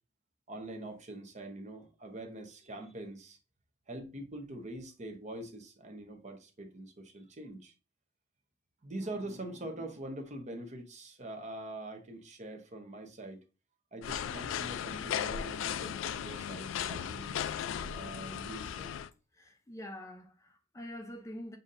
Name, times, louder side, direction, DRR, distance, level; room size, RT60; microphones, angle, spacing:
voice 1, 0.5-3.4 3.9-7.7 8.8-13.4 13.9-17.4 17.9-19.0, right 1 dB, 40° right, 0.8 m, -44 dB
sound 1, 14.0-19.1, left 9 dB, 75° left, 0.3 m, -36 dB
voice 2, 19.3-21.6, left 1 dB, 15° left, 0.5 m, -45 dB
7.0 x 2.7 x 2.5 m
head